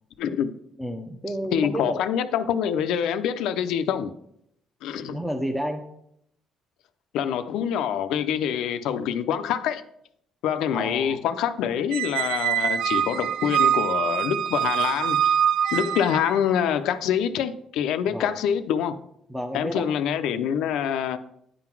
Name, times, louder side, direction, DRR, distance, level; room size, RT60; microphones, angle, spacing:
voice 1, 0.2-0.5 1.5-4.1 4.8-5.2 7.1-9.8 10.4-15.4 15.7-18.9 19.5-21.2, left 8 dB, 85° left, 10 dB, 0.5 m, -25 dB
voice 2, 0.8-2.0 5.0-5.9 10.7-11.2 18.1-18.3 19.3-19.9, equal, ahead, 2 dB, 0.7 m, -31 dB
Squeak, 11.9-16.4, right 9 dB, 90° right, 0.4 m, -24 dB
9.9 x 3.9 x 6.0 m, 0.74 s
cardioid pair, 115°, 0 cm